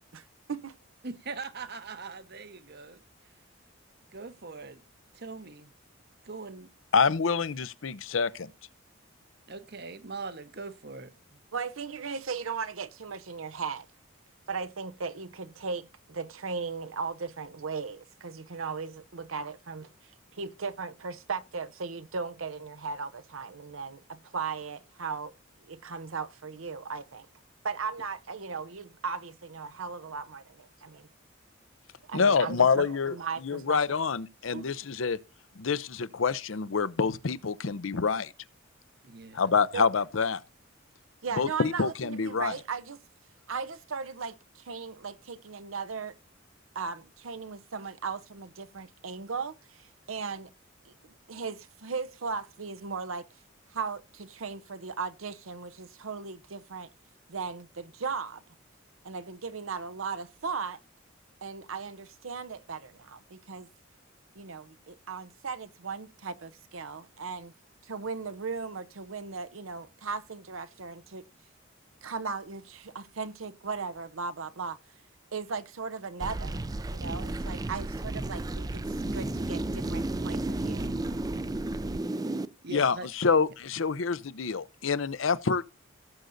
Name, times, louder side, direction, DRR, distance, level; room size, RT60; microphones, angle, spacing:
voice 1, 0.1-0.7 11.5-13.9 14.5-27.3 27.6-31.1 32.0-34.0 34.5-34.9 39.7-39.9 41.2-43.0 43.5-46.1 46.7-50.5 50.8-53.3 53.7-56.9 57.3-58.4 59.0-60.8 61.4-63.7 64.3-67.5 67.8-71.3 72.0-74.8 75.3-76.6 76.9-78.8 79.1-80.9, right 5 dB, 85° right, 0.8 m, -37 dB
voice 2, 1.0-3.0 4.1-4.8 5.1-5.7 6.2-6.7 9.5-11.4 39.0-39.6 82.6-83.1, right 4 dB, 55° right, 1.1 m, -41 dB
voice 3, 6.9-8.5 32.1-33.2 33.4-35.2 35.6-38.3 39.3-40.4 41.4-42.5 82.7-85.7, left 5 dB, 75° left, 0.7 m, -27 dB
sound 1, 76.2-82.5, right 2 dB, 20° right, 0.4 m, -32 dB
17.5 x 7.8 x 2.6 m
head